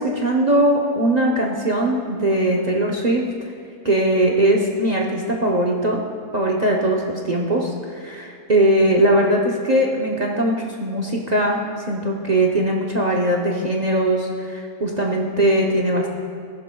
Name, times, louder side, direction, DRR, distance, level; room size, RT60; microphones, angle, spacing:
voice 1, 0.0-3.2 3.8-6.0 6.3-16.1, right 1 dB, 35° right, -1 dB, 0.6 m, -20 dB
15.0 x 11.5 x 2.3 m, 2.4 s
omnidirectional pair, 1.8 m